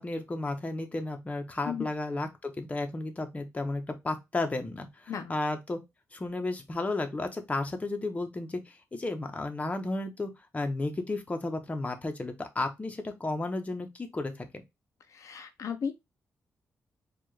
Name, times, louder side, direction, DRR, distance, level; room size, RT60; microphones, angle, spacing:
voice 1, 0.0-5.8 6.1-14.6, left 2 dB, 25° left, 1.0 m, -33 dB
voice 2, 15.1-15.9, left 7 dB, 65° left, 0.6 m, -35 dB
4.5 x 2.5 x 3.1 m
cardioid pair, 100°, 6 cm